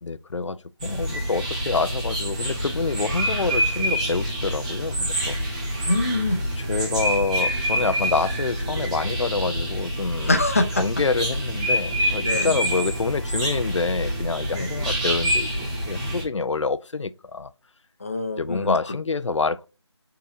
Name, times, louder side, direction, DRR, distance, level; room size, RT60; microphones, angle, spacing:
voice 1, 0.0-5.7 6.6-10.3 10.8-17.5 18.4-19.7, left 4 dB, 80° left, 0.5 m, -27 dB
sound 1, 0.8-16.2, equal, 15° right, 1.6 m, -26 dB
voice 2, 5.8-6.4 10.3-10.7 12.2-12.6 14.5-14.7 18.0-18.8, left 2 dB, 30° left, 0.7 m, -24 dB
5.6 x 3.9 x 2.4 m
figure-of-eight pair, 170°, 15 cm